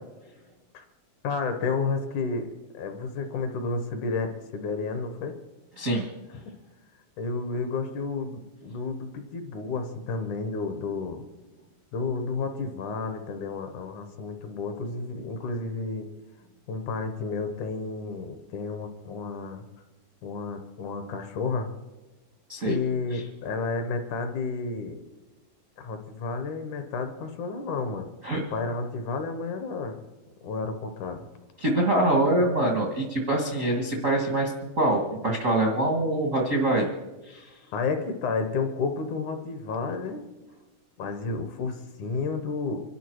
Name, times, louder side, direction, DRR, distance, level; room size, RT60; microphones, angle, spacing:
voice 1, 1.2-5.3 7.2-11.2 11.9-16.1 16.7-19.6 20.2-21.7 22.7-25.0 25.8-28.1 28.5-30.0 30.4-31.3 37.7-40.2 41.0-42.8, left 4 dB, 65° left, 7 dB, 2.2 m, -31 dB
voice 2, 5.8-6.1 22.5-22.8 23.1-23.2 28.2-28.4 31.6-36.9 37.2-37.5, right 1 dB, 60° right, 0 dB, 0.8 m, -24 dB
25.5 x 11.5 x 4.6 m, 1.1 s
omnidirectional pair, 4.3 m